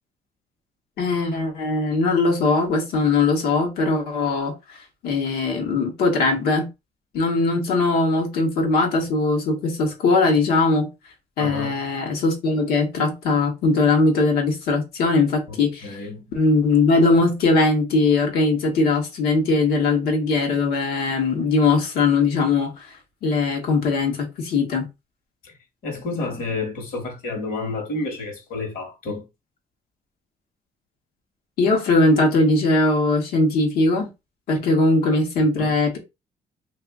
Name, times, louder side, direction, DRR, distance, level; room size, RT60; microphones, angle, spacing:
voice 1, 1.0-4.8 5.0-6.7 7.1-10.9 11.4-16.0 16.3-22.9 23.2-24.9 31.6-34.1 34.5-36.0, left 3 dB, 85° left, 1.2 m, -20 dB
voice 2, 11.4-11.7 15.5-15.6 15.8-16.3 25.4-25.5 25.8-29.3 35.6-35.7, left 3 dB, 70° left, 1.4 m, -30 dB
2.7 x 2.6 x 3.6 m
cardioid pair, 85°, 16 cm